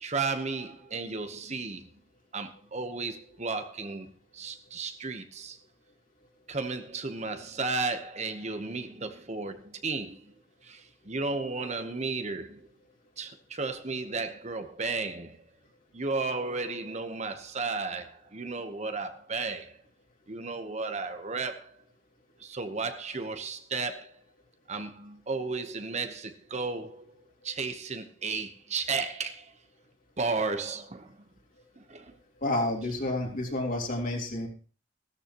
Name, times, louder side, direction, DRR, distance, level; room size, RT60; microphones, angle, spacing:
voice 1, 0.0-1.9 2.3-5.6 6.5-10.3 10.6-12.7 13.2-15.4 15.9-19.8 20.3-21.8 22.4-24.1 24.7-29.5 30.2-31.2 31.8-32.1, right 4 dB, 35° right, 1.0 m, -34 dB
voice 2, 32.4-34.5, left 1 dB, 45° left, 3.5 m, -30 dB
17.0 x 13.5 x 3.0 m
head